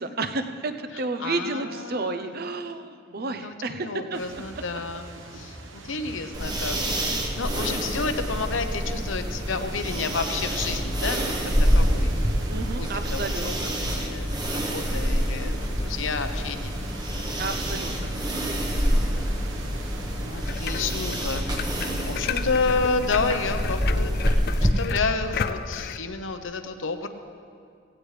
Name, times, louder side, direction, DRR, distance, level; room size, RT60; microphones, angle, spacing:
voice 1, 0.0-4.4 12.5-13.7 17.4-18.1, right 3 dB, 50° right, 8 dB, 0.7 m, -31 dB
voice 2, 0.9-2.4 3.1-11.3 11.6-12.1 12.8-16.8 18.6-19.5 20.1-27.1, left 4 dB, 70° left, 8 dB, 0.9 m, -31 dB
sound 1, 4.1-20.5, right 2 dB, 70° right, 1.1 m, -43 dB
sound 2, 6.3-24.7, equal, 20° right, 1.1 m, -27 dB
sound 3, 20.4-26.0, left 7 dB, 50° left, 0.4 m, -34 dB
17.0 x 17.0 x 3.3 m, 2.2 s
head